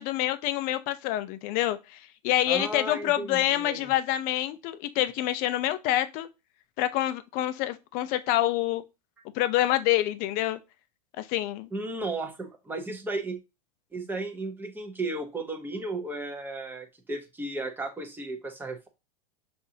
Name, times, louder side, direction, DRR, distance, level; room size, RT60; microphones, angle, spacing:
voice 1, 0.0-6.3 6.8-8.8 9.3-10.6 11.2-11.7, left 14 dB, 45° left, 0.6 m, -27 dB
voice 2, 2.5-3.8 11.7-13.4 13.9-18.9, right 2 dB, 10° right, 0.9 m, -34 dB
6.7 x 2.6 x 2.8 m
hypercardioid pair, 120°, 21 cm